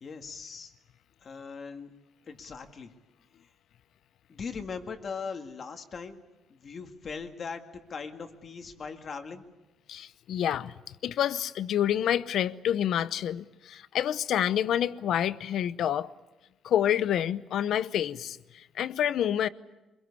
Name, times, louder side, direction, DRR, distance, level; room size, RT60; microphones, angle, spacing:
voice 1, 0.0-0.7 1.2-1.9 2.3-2.9 4.3-6.2 6.5-9.5, left 5 dB, 40° left, 2.0 m, -40 dB
voice 2, 9.9-10.7 11.0-16.1 16.6-19.5, left 10 dB, 65° left, 0.8 m, -28 dB
25.0 x 23.0 x 8.5 m
cardioid pair, 150°, 0 cm